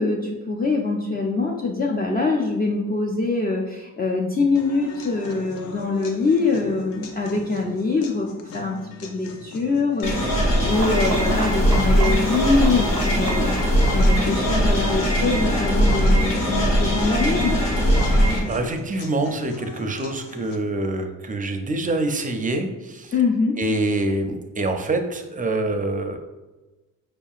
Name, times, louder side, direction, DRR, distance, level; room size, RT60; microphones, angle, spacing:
voice 1, 0.0-17.5 23.1-23.6, left 3 dB, 30° left, -1 dB, 0.4 m, -24 dB
sound 1, 4.6-20.6, left 3 dB, 90° left, 0.5 m, -40 dB
sound 2, 10.0-18.4, equal, 75° left, 1.2 m, -20 dB
sound 3, 10.7-15.8, right 3 dB, 90° right, 0.7 m, -35 dB
voice 2, 18.5-23.1 23.6-26.2, right 2 dB, 25° right, 5 dB, 0.5 m, -25 dB
4.9 x 2.7 x 2.4 m, 1.2 s
cardioid pair, 80°, 33 cm